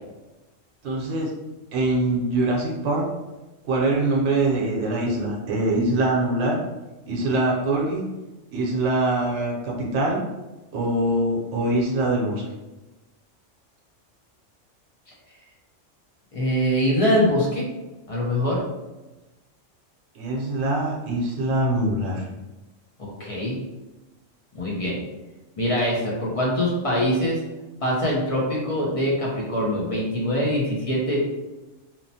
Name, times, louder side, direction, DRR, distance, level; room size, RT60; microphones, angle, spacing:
voice 1, 0.8-1.3 1.7-3.0 3.6-6.6 7.1-8.0 8.5-10.2 10.7-12.4 20.1-22.3, right 2 dB, 65° right, -2 dB, 1.0 m, -23 dB
voice 2, 16.3-17.7 18.1-18.6 23.0-23.6 24.5-25.0 25.6-27.4 27.8-31.2, equal, 40° left, -4 dB, 0.5 m, -23 dB
3.0 x 2.1 x 2.7 m, 1.1 s
omnidirectional pair, 1.3 m